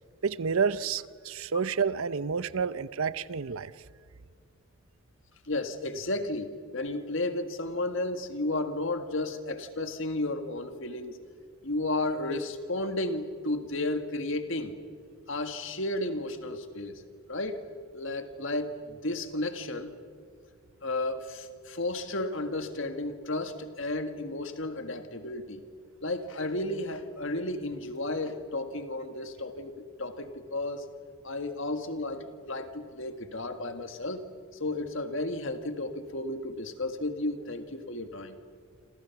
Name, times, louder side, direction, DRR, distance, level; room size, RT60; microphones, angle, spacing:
voice 1, 0.2-3.7, right 5 dB, 70° right, 16 dB, 0.7 m, -29 dB
voice 2, 5.5-11.2 11.6-14.8 15.3-17.0 17.3-17.6 17.9-20.0 20.8-25.6 26.0-30.9 31.2-34.3 34.6-38.4, left 2 dB, 55° left, 8 dB, 1.8 m, -33 dB
27.5 x 27.5 x 6.0 m, 2.1 s
head